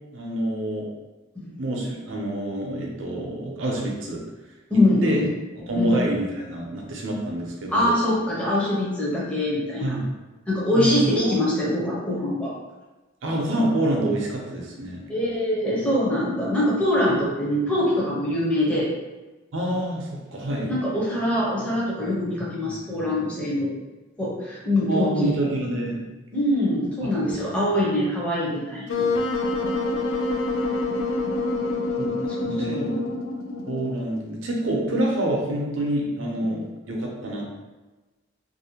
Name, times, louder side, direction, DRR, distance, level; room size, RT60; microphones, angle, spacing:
voice 1, 0.1-0.9 1.6-4.2 4.7-5.3 5.6-8.0 9.8-10.1 10.7-11.3 13.2-15.0 19.5-20.7 24.9-26.0 27.3-27.9 32.0-32.1 32.4-32.9 33.7-37.5, right 1 dB, 75° right, -1 dB, 0.6 m, -27 dB
voice 2, 4.7-5.3 5.8-5.9 7.7-10.0 10.5-12.5 15.1-18.9 20.6-23.7 24.2-25.3 26.3-28.9 32.3-33.0 36.5-36.6, left 1 dB, 5° left, -7 dB, 0.5 m, -24 dB
Wind instrument woodwind instrument, 28.9-34.0, left 2 dB, 85° left, 0.4 m, -26 dB
2.5 x 2.1 x 2.8 m, 1.2 s
head